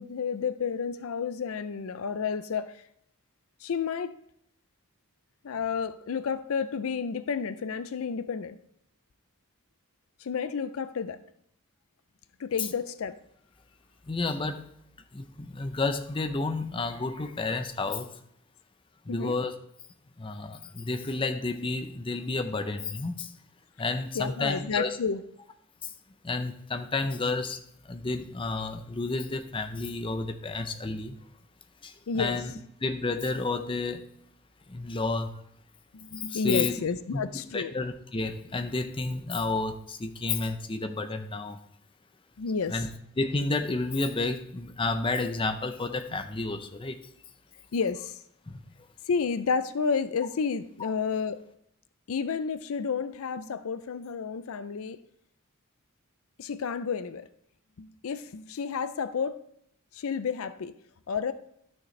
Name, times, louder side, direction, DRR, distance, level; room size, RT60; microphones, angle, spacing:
voice 1, 0.0-2.8 3.6-4.2 5.4-8.6 10.2-11.2 12.4-13.2 19.1-19.4 24.1-25.2 32.1-32.5 35.9-37.7 42.4-42.8 47.7-48.2 49.1-51.4 52.1-55.0 56.4-57.3 57.8-59.4 59.9-60.7 61.1-61.3, left 5 dB, 75° left, 0.5 m, -31 dB
voice 2, 14.1-14.7 15.1-18.1 19.1-19.5 20.2-23.3 23.8-25.0 25.8-25.9 26.2-31.2 31.8-32.5 32.8-34.0 34.7-35.4 36.2-36.7 37.1-37.2 37.5-41.6 42.7-42.9 43.2-47.0 48.5-48.6 50.8-50.9, left 3 dB, 25° left, 0.6 m, -31 dB
12.0 x 6.5 x 3.2 m
head